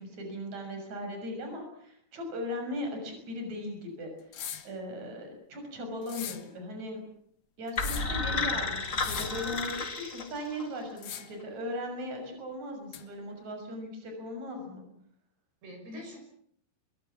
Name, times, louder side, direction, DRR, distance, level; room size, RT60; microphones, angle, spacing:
voice 1, 0.0-4.3 4.6-7.0 7.6-14.8, left 1 dB, 40° right, 4 dB, 7.7 m, -38 dB
sound 1, 4.3-4.7 6.0-6.5 7.7-8.2 8.9-9.4 11.0-11.4 12.9-13.0, left 9 dB, 60° left, 1.8 m, -40 dB
sound 2, 7.8-10.8, left 4 dB, 90° left, 0.7 m, -32 dB
voice 2, 8.0-8.6 15.6-16.2, equal, 70° right, 3 dB, 8.0 m, -45 dB
25.0 x 23.0 x 7.3 m, 0.64 s
omnidirectional pair, 4.8 m